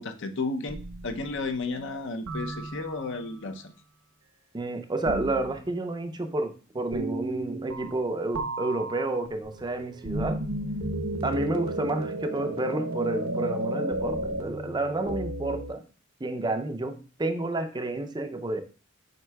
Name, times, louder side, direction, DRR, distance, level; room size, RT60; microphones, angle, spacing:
voice 1, 0.0-3.7, left 3 dB, 60° left, 7 dB, 0.6 m, -33 dB
sound 1, 0.7-1.5 2.3-3.3 5.1-5.6 6.9-8.1 8.3-15.7, right 1 dB, 75° right, 0.9 m, -33 dB
voice 2, 4.5-10.4 11.2-15.8 16.2-18.6, right 2 dB, 20° right, 7 dB, 0.5 m, -30 dB
7.6 x 5.4 x 2.3 m, 0.37 s
head